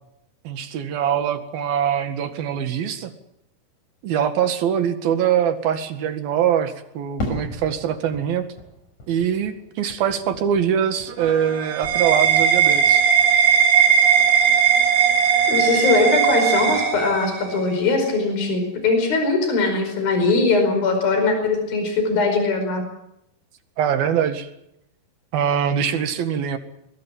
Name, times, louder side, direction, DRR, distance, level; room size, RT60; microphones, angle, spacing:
voice 1, 0.5-3.1 4.0-8.4 9.1-13.0 23.8-24.5 25.3-26.6, right 8 dB, 75° right, 9 dB, 3.7 m, -23 dB
Fireworks, 7.2-11.5 11.8-12.6, left 1 dB, 50° left, 7.2 m, -35 dB
sound 1, 11.1-17.6, right 7 dB, 60° right, 3.9 m, -18 dB
voice 2, 15.5-22.8, left 3 dB, 70° left, 6 dB, 6.7 m, -21 dB
23.0 x 22.0 x 7.5 m, 0.80 s
omnidirectional pair, 4.3 m